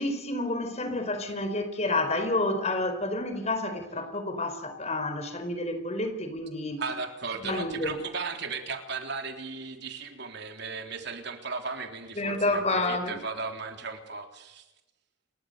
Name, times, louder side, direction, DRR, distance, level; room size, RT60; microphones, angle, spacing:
voice 1, 0.0-6.8 7.4-8.0 12.2-13.2, left 2 dB, 35° left, 4.6 m, -29 dB
voice 2, 6.8-14.6, right 4 dB, 60° right, 3.7 m, -36 dB
29.0 x 23.0 x 6.8 m
head